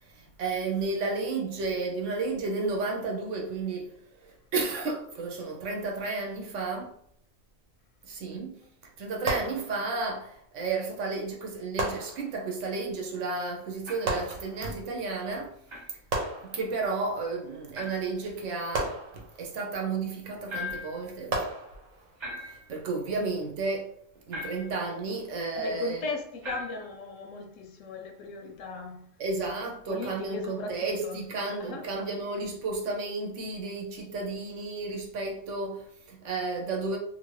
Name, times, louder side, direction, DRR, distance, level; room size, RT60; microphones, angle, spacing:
voice 1, 0.0-3.9 4.2-6.9 8.0-8.6 9.0-15.6 16.4-21.5 22.4-23.9 24.3-26.1 28.4-28.5 29.2-37.0, right 3 dB, 70° right, 1.0 m, -32 dB
sound 1, 9.3-10.2 11.8-12.7 14.1-14.9 16.1-17.0 18.7-19.7 21.3-22.2, right 2 dB, 85° right, 1.2 m, -34 dB
sound 2, 13.8-14.2 15.7-15.9 17.7-18.1 20.5-21.0 22.2-22.8 24.3-24.8 26.4-27.0, left 2 dB, 35° right, 0.5 m, -39 dB
voice 2, 25.6-29.1 29.9-31.3 31.6-31.9, left 3 dB, 75° left, 0.9 m, -37 dB
2.7 x 2.6 x 3.1 m
omnidirectional pair, 1.4 m